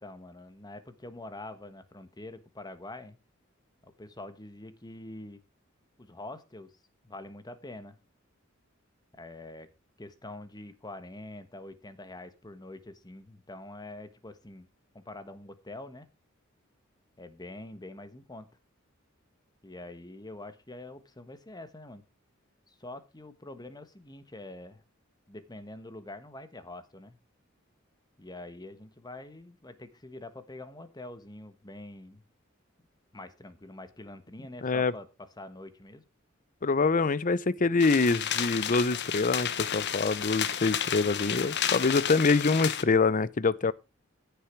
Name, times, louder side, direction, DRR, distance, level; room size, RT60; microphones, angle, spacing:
voice 1, 0.0-3.2 3.8-5.4 6.0-6.7 7.0-8.0 9.1-9.7 10.0-14.7 14.9-16.1 17.2-18.5 19.6-22.0 22.7-24.8 25.3-27.2 28.2-32.2 33.1-36.0, left 2 dB, 20° left, 1.4 m, -45 dB
voice 2, 34.6-34.9 36.6-43.7, left 4 dB, 40° left, 0.6 m, -25 dB
sound 1, 37.8-42.8, left 9 dB, 55° left, 1.1 m, -31 dB
15.5 x 7.0 x 4.5 m
head